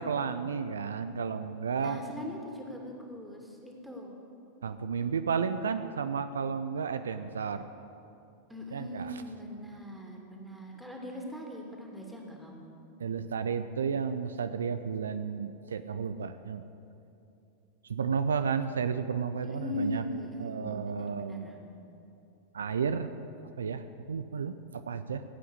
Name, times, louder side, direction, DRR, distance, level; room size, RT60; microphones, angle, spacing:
voice 1, 0.0-2.0 4.6-7.7 8.7-9.2 13.0-16.6 17.8-20.0 20.4-21.5 22.5-23.1 23.6-25.2, right 6 dB, 70° right, 10 dB, 0.5 m, -32 dB
voice 2, 1.8-4.2 8.5-12.8 19.4-21.6, left 1 dB, ahead, 0 dB, 2.6 m, -40 dB
16.5 x 8.5 x 8.2 m, 2.8 s
figure-of-eight pair, 90°, 0 cm